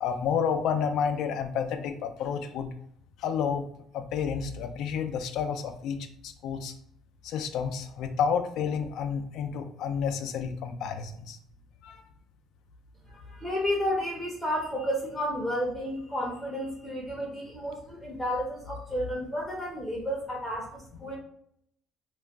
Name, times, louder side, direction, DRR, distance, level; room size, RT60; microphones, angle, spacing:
voice 1, 0.0-2.7 3.2-3.6 3.9-6.7 7.2-11.4 11.8-12.0, left 7 dB, 70° left, 8 dB, 0.3 m, -30 dB
voice 2, 13.1-21.2, equal, 5° left, -3 dB, 0.6 m, -32 dB
2.3 x 2.1 x 3.4 m, 0.66 s
cardioid pair, 130°, 0 cm